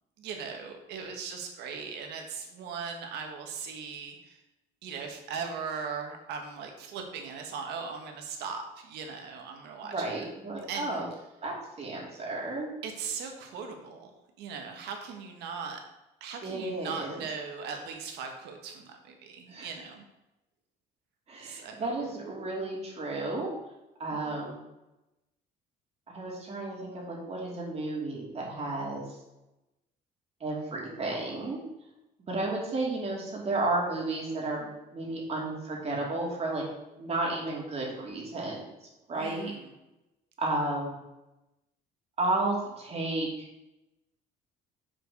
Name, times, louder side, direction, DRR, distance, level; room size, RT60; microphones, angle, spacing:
voice 1, 0.2-4.4 4.8-10.2 10.7-11.0 12.8-14.1 14.4-15.8 16.2-20.0 21.4-21.9 24.1-24.4 39.1-39.8, right 5 dB, 80° right, 4 dB, 1.6 m, -39 dB
voice 2, 9.9-11.1 11.4-12.7 16.4-17.2 19.5-19.7 21.3-23.5 24.0-24.5 26.1-29.1 30.4-31.6 32.3-36.6 37.0-38.6 39.1-39.5 40.4-41.0 42.2-43.5, right 2 dB, 40° right, -2 dB, 2.9 m, -32 dB
6.2 x 4.9 x 6.6 m, 0.94 s
cardioid pair, 110°, 17 cm